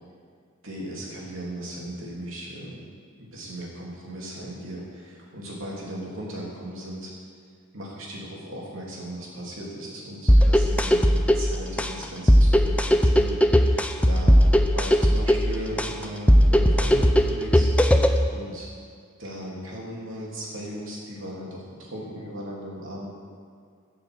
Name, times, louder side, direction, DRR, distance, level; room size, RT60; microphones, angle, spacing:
voice 1, 0.6-2.8 3.2-7.1 7.7-14.3 14.7-17.7 18.3-18.7 19.2-23.1, right 1 dB, 65° right, -4 dB, 3.2 m, -37 dB
sound 1, 10.3-18.3, equal, 5° left, 0.5 m, -18 dB
13.0 x 6.4 x 7.8 m, 2.2 s
head